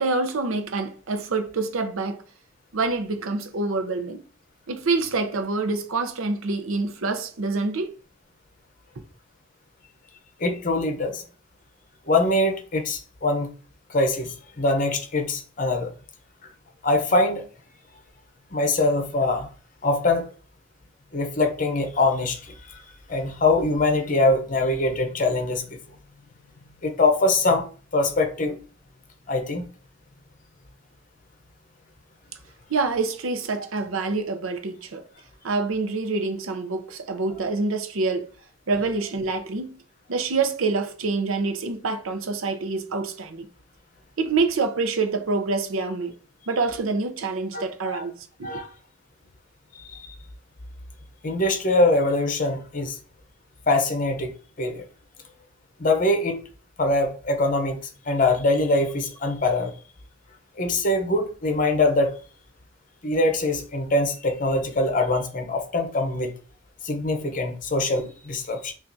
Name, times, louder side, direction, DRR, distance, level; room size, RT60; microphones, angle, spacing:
voice 1, 0.0-2.2 2.7-4.2 4.7-7.9 32.7-35.0 35.4-38.3 38.7-39.8 40.1-43.5 44.2-46.1 46.5-48.1 48.4-48.6, right 3 dB, 80° right, 0.6 m, -26 dB
voice 2, 10.4-11.2 12.1-13.5 13.9-15.9 16.8-17.4 18.5-19.5 19.8-20.3 21.1-22.8 23.1-25.8 26.8-28.5 29.3-29.7 47.5-48.0 48.4-48.7 49.8-50.1 51.2-53.0 53.7-54.3 54.6-54.9 55.8-56.4 56.8-57.8 58.1-59.7 60.6-62.1 63.0-66.3 66.8-68.7, left 2 dB, 40° left, 0.7 m, -23 dB
5.5 x 2.4 x 2.6 m
head